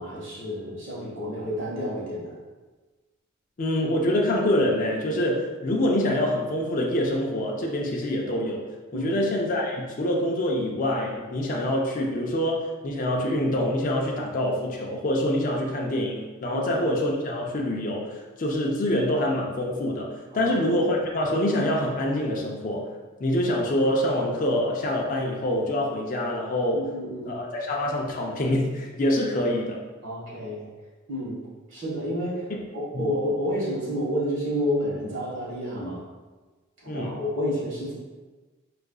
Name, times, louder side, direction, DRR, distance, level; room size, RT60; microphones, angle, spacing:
voice 1, 0.0-2.3 8.9-9.1 16.5-16.6 20.3-20.5 26.7-27.3 30.0-30.7 31.1-31.4 31.7-36.0 36.8-37.9, equal, 65° right, -7 dB, 1.4 m, -30 dB
voice 2, 3.6-8.6 8.9-22.9 23.2-26.9 27.3-29.8 32.5-32.6 32.9-33.1 36.9-37.2, left 1 dB, 40° left, -1 dB, 0.4 m, -25 dB
4.6 x 2.5 x 2.3 m, 1.3 s
head